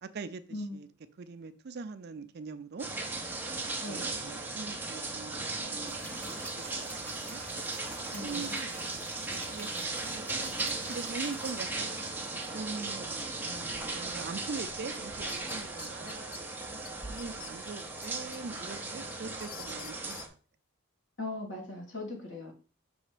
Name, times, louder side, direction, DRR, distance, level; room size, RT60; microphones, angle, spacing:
voice 1, 0.0-0.9 1.2-2.9 3.9-6.0 6.6-7.4 8.2-8.9 9.3-11.9 12.5-16.6 17.1-20.2, right 4 dB, 50° right, 0.4 m, -42 dB
sound 1, 2.8-20.3, right 3 dB, 10° right, 0.7 m, -37 dB
voice 2, 3.8-4.1 8.1-8.6 21.2-22.5, left 2 dB, 60° left, 1.9 m, -39 dB
sound 2, 5.9-12.8, right 1 dB, 10° left, 1.1 m, -50 dB
sound 3, 14.9-16.4 16.8-16.9 17.2-18.4 18.8-20.3, left 11 dB, 85° left, 0.4 m, -48 dB
6.2 x 3.2 x 4.9 m
head